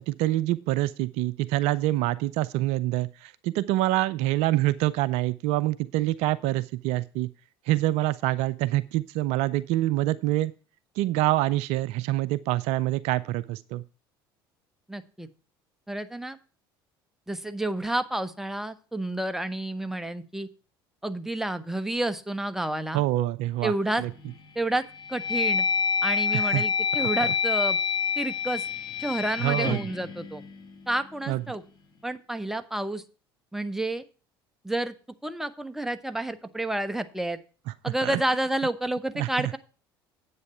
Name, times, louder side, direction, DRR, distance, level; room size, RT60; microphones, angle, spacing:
voice 1, 0.0-7.3 7.7-10.5 11.0-13.8 22.9-24.1 26.3-26.6 27.0-27.3 29.4-29.8 31.3-31.4 37.7-37.8 38.0-38.2 39.2-39.6, right 15 dB, 60° right, 18 dB, 0.5 m, -26 dB
voice 2, 14.9-15.3 15.9-16.4 17.3-20.5 21.0-23.0 23.6-24.0 24.5-24.8 25.1-25.6 26.0-27.8 28.2-28.6 29.0-30.4 30.9-31.6 32.0-33.0 33.5-34.0 34.6-34.9 35.2-37.4 37.8-39.6, right 1 dB, 5° right, 11 dB, 1.2 m, -30 dB
sound 1, 23.9-24.4 24.9-31.0, left 6 dB, 40° left, 2.9 m, -28 dB
9.6 x 8.4 x 4.3 m, 0.36 s
hypercardioid pair, 65°, 12 cm